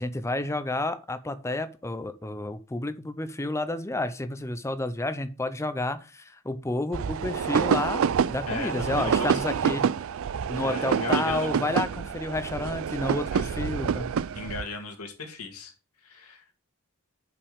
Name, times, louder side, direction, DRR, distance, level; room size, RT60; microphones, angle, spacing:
voice 1, 0.0-8.0 8.3-9.9 10.5-14.1, left 2 dB, 15° left, 12 dB, 0.6 m, -30 dB
sound 1, 6.9-14.6, right 7 dB, 65° right, 0.4 m, -27 dB
voice 2, 8.5-9.4 10.6-11.6 12.0-12.1 13.3-13.5 14.3-16.5, left 3 dB, 80° left, 3 dB, 1.9 m, -37 dB
5.8 x 5.2 x 6.4 m, 0.34 s
head